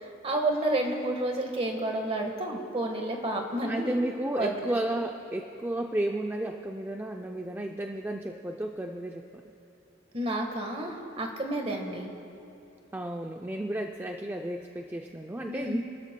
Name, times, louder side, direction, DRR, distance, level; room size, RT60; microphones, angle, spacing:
voice 1, 0.0-4.0 4.3-4.8 10.1-12.1 15.4-15.8, right 1 dB, 30° right, 3 dB, 1.4 m, -30 dB
voice 2, 3.7-9.4 12.9-15.8, right 1 dB, 10° right, 3 dB, 0.4 m, -33 dB
27.5 x 13.5 x 2.2 m, 2.9 s
head